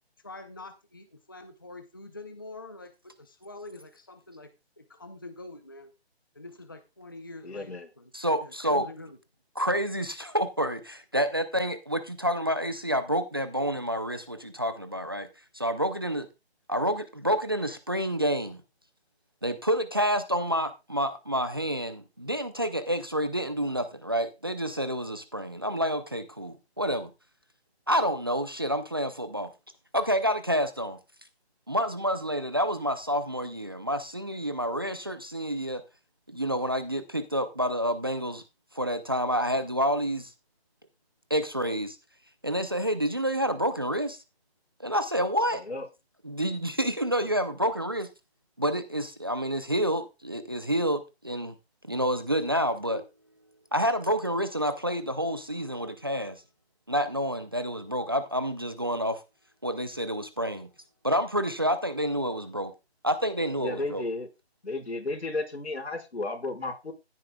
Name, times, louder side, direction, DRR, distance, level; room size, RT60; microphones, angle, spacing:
voice 1, 0.2-4.5 4.8-5.9 6.3-8.1 8.4-9.2, left 2 dB, 20° left, 0.6 m, -45 dB
voice 2, 7.4-7.9 45.7-45.8 63.6-64.3 64.6-66.9, left 2 dB, 85° left, 4.8 m, -33 dB
voice 3, 8.1-8.9 9.6-15.3 15.5-16.3 16.7-18.6 19.4-27.1 27.9-29.5 29.9-31.0 31.7-35.8 36.3-38.4 38.7-40.3 41.3-42.0 42.4-44.2 44.8-45.6 46.2-48.1 48.6-51.5 51.9-53.0 53.7-56.4 56.9-59.2 59.6-60.7 61.0-62.7 63.0-64.0, equal, 20° right, 0.6 m, -28 dB
15.0 x 9.5 x 2.3 m
figure-of-eight pair, 170°, 32 cm